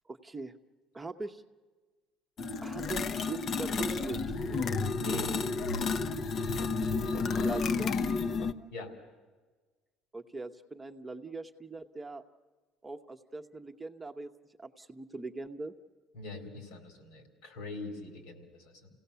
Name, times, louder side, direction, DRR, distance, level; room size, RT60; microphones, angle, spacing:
voice 1, 0.1-0.5 0.9-1.4 2.6-4.6 7.4-8.0 10.1-12.2 12.8-14.3 14.6-15.7, right 3 dB, 15° right, 5 dB, 0.9 m, -41 dB
sound 1, 2.4-8.5, left 4 dB, 50° left, 0.9 m, -31 dB
voice 2, 5.0-5.4 8.7-8.9 16.1-18.9, left 2 dB, 90° left, 4 dB, 3.9 m, -42 dB
29.0 x 17.0 x 6.9 m, 1.4 s
cardioid pair, 110°, 0 cm